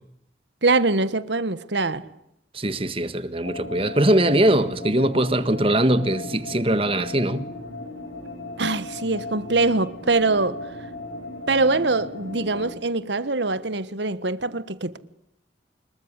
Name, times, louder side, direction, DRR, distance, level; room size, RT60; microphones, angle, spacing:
voice 1, 0.6-2.0 8.6-10.6 11.5-15.0, right 3 dB, 70° right, 1.5 m, -23 dB
voice 2, 2.5-7.4, right 1 dB, 30° right, 1.6 m, -21 dB
sound 1, 3.4-12.8, left 2 dB, 85° left, 6.5 m, -36 dB
26.0 x 22.0 x 9.9 m
head